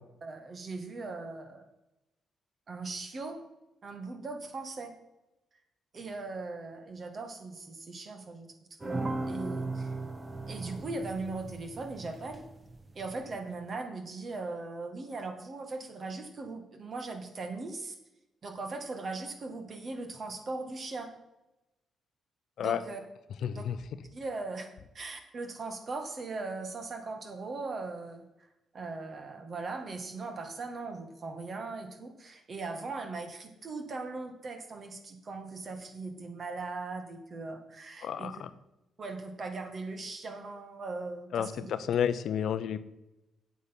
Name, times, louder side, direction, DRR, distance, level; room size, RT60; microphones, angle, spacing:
voice 1, 0.2-1.7 2.7-3.4 3.8-4.9 5.9-8.5 8.8-9.9 10.5-12.4 12.9-18.0 18.4-21.1 22.6-23.0 23.5-23.7 24.1-28.3 28.7-38.4 39.0-41.7, right 3 dB, 50° right, 6 dB, 2.0 m, -39 dB
sound 1, 8.8-13.4, right 2 dB, 30° right, 1.4 m, -37 dB
voice 2, 23.4-23.8 38.0-38.5 41.3-42.8, left 9 dB, 70° left, 13 dB, 0.7 m, -31 dB
8.2 x 7.8 x 6.0 m, 0.95 s
supercardioid pair, 65°, 0 cm